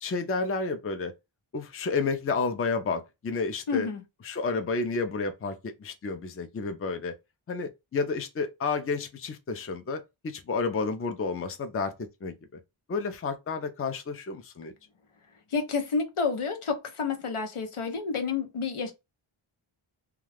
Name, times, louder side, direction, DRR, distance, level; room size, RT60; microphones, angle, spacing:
voice 1, 0.0-1.1 1.5-3.9 4.2-7.1 7.5-11.9 12.2-12.3 12.9-14.7, left 4 dB, 30° left, 0.4 m, -31 dB
voice 2, 3.7-4.0 15.5-18.9, left 5 dB, 75° left, 0.8 m, -29 dB
2.3 x 2.2 x 3.3 m
wide cardioid pair, 65°, 50 cm